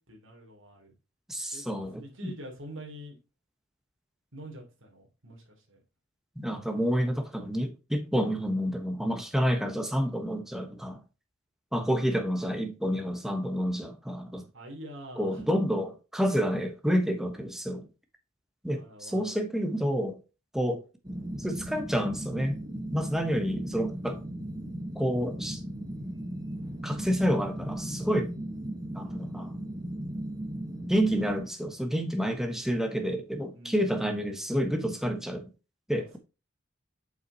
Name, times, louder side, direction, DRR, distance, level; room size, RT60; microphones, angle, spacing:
voice 1, 0.1-0.9 1.5-1.6 1.9-3.2 4.3-5.8 14.5-15.5 18.7-19.3 33.6-34.3 35.9-36.2, right 1 dB, 70° right, 3.0 m, -46 dB
voice 2, 1.3-2.3 6.4-11.0 11.7-14.5 15.2-17.9 18.6-20.2 20.5-20.8 21.4-24.2 24.9-25.6 26.8-28.3 28.9-29.6 30.9-35.5 35.9-36.2, equal, ahead, 1.2 m, -29 dB
sound 1, 21.0-31.4, right 1 dB, 20° right, 1.3 m, -37 dB
7.9 x 5.7 x 2.8 m
head